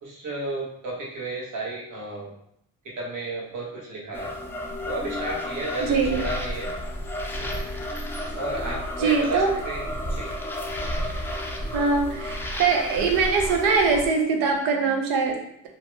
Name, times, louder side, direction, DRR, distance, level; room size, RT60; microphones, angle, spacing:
voice 1, 0.0-2.3 2.8-4.3 4.9-6.7 7.4-7.6 8.3-9.8 10.1-10.3, right 2 dB, 60° right, -3 dB, 1.1 m, -32 dB
sound 1, 4.1-14.1, equal, 5° left, 0.4 m, -32 dB
voice 2, 5.9-6.2 9.0-9.5 11.7-15.7, right 4 dB, 85° right, 2 dB, 0.7 m, -22 dB
2.7 x 2.0 x 3.3 m, 0.73 s
supercardioid pair, 75°, 34 cm